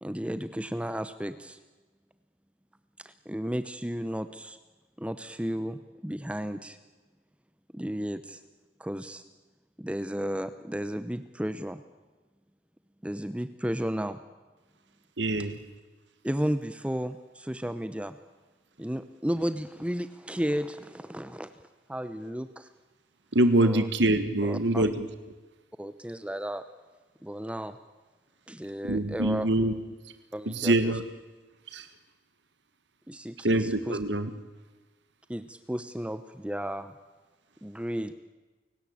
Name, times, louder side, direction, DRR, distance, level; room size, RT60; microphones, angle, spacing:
voice 1, 0.0-1.6 3.0-4.6 5.0-6.8 7.7-8.4 8.8-9.2 9.8-11.8 13.0-14.2 16.2-18.2 18.8-21.5 21.9-22.7 23.6-23.9 24.4-24.9 25.8-26.6 27.2-27.8 28.5-29.5 30.3-31.0 33.1-34.0 35.3-36.9 37.6-38.1, equal, 5° right, 11 dB, 0.7 m, -33 dB
voice 2, 15.2-15.5 23.3-25.0 28.9-29.7 30.5-31.0 31.7-31.9 33.4-34.3, right 1 dB, 75° right, 10 dB, 1.6 m, -24 dB
29.5 x 17.5 x 8.6 m, 1.3 s
head